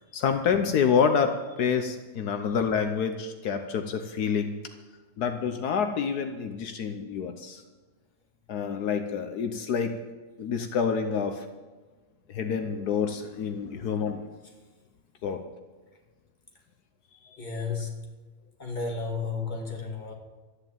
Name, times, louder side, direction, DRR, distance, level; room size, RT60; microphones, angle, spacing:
voice 1, 0.1-4.5 5.2-7.6 8.5-10.0 10.4-11.5 12.3-14.2 15.2-15.4, left 6 dB, 75° left, 6 dB, 1.5 m, -27 dB
voice 2, 17.4-18.1 18.6-20.1, left 4 dB, 30° left, 0 dB, 2.5 m, -33 dB
13.0 x 9.7 x 9.0 m, 1.3 s
omnidirectional pair, 1.7 m